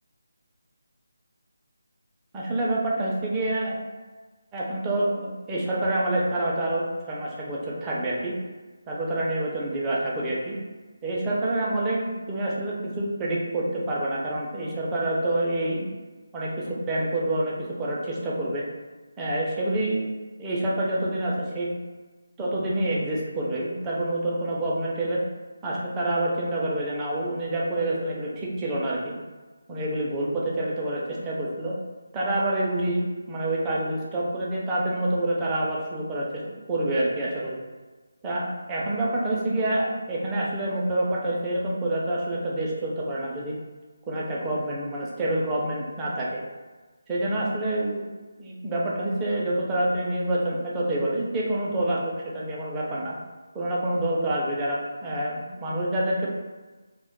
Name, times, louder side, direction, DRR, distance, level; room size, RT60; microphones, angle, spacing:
voice 1, 2.3-3.8 4.5-8.3 8.9-10.6 11.0-15.9 16.3-18.6 19.2-20.1 20.4-21.7 22.4-25.2 25.6-29.2 29.7-31.7 32.1-37.6 38.2-43.5 44.1-46.4 47.1-48.0 48.4-53.1 53.5-56.3, right 1 dB, 15° right, -5 dB, 0.4 m, -27 dB
2.1 x 2.1 x 2.9 m, 1.3 s
figure-of-eight pair, 165°, 0 cm